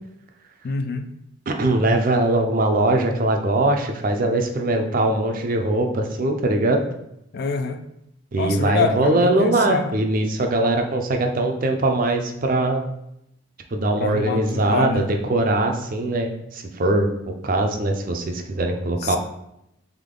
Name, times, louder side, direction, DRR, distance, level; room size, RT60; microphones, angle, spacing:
voice 1, 0.6-1.0 7.3-7.8 8.3-9.9 14.0-15.1 19.0-19.2, left 4 dB, 45° left, 8 dB, 0.3 m, -26 dB
voice 2, 1.5-6.8 8.3-12.8 13.7-17.1 17.4-19.2, right 2 dB, 40° right, 4 dB, 0.4 m, -21 dB
3.6 x 3.5 x 3.7 m, 0.82 s
head